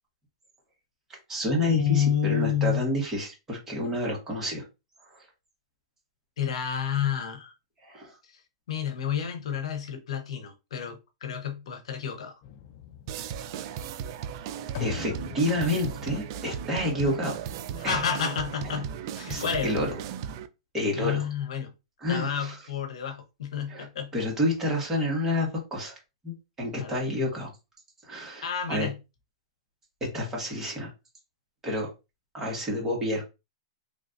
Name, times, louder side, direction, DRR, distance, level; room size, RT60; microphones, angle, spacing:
voice 1, 1.1-4.6 5.1-5.3 7.8-8.1 14.8-17.4 17.8-18.0 19.3-19.9 20.7-21.3 22.0-22.6 23.7-23.9 24.1-26.0 26.2-27.5 28.0-28.9 30.0-30.9 31.6-31.9 32.3-33.2, left 1 dB, 15° right, 1.7 m, -29 dB
voice 2, 1.6-2.9 6.4-7.5 8.2-8.4 8.7-12.4 17.8-19.8 20.9-21.7 22.1-24.1 26.8-27.0 28.4-29.0, left 8 dB, 70° left, 1.0 m, -30 dB
sound 1, 12.4-17.5, left 10 dB, 40° left, 0.5 m, -42 dB
sound 2, 13.1-20.5, right 8 dB, 45° right, 0.4 m, -36 dB
3.9 x 3.2 x 2.6 m
hypercardioid pair, 145°, 3 cm